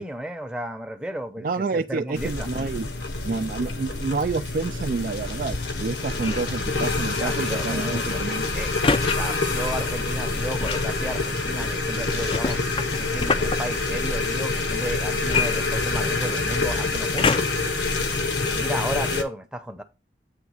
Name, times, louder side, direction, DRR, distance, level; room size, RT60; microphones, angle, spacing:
voice 1, 0.0-2.5 7.2-8.8 9.1-12.6 13.0-17.4 18.4-19.8, right 1 dB, 5° right, 0.7 m, -34 dB
voice 2, 1.4-2.9 3.2-8.5, right 4 dB, 50° right, 0.3 m, -28 dB
sound 1, 2.1-19.2, left 3 dB, 80° left, 1.1 m, -27 dB
sound 2, 4.8-11.2, left 2 dB, 55° left, 0.8 m, -40 dB
sound 3, 6.1-6.5 8.8-9.2 10.6-10.9 12.3-13.6 15.3-16.2 17.2-17.7 18.4-18.5, left 4 dB, 30° left, 0.4 m, -25 dB
8.2 x 3.4 x 6.4 m
head